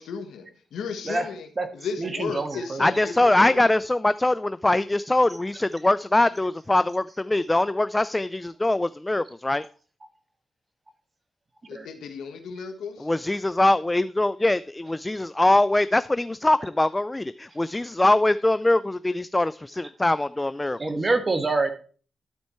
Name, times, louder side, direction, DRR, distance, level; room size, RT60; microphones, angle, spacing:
voice 1, 0.0-3.6 11.7-13.1, left 5 dB, 85° left, 6 dB, 1.3 m, -35 dB
voice 2, 2.0-2.8 11.7-11.9 20.8-21.7, right 3 dB, 35° right, 8 dB, 1.5 m, -26 dB
voice 3, 2.8-9.6 13.0-21.1, left 2 dB, 15° left, 15 dB, 0.3 m, -22 dB
12.5 x 4.4 x 4.3 m, 0.40 s
cardioid pair, 70°, 0 cm